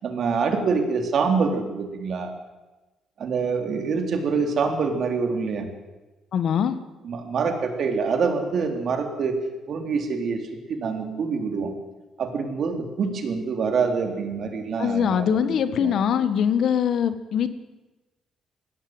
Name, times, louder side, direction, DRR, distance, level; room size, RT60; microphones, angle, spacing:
voice 1, 0.0-2.3 3.2-5.7 7.0-9.3 9.7-10.4 10.7-11.7 12.2-15.4 15.8-15.9, right 5 dB, 60° right, 4 dB, 3.8 m, -25 dB
voice 2, 6.3-6.8 14.8-17.5, left 8 dB, 65° left, 11 dB, 1.6 m, -22 dB
20.5 x 16.0 x 8.1 m, 1.1 s
cardioid pair, 90°, 0 cm